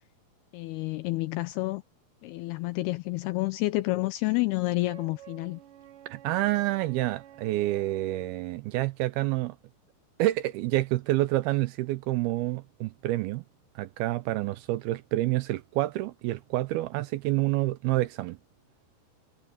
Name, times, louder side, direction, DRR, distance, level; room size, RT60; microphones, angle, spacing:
voice 1, 0.5-1.8 2.2-5.6, left 20 dB, 85° left, 2.4 m, -29 dB
Wind instrument woodwind instrument, 4.8-8.4, right 12 dB, 65° right, 2.4 m, -51 dB
voice 2, 6.1-9.6 10.2-13.4 13.8-18.4, right 17 dB, 85° right, 2.2 m, -28 dB
omnidirectional pair, 5.0 m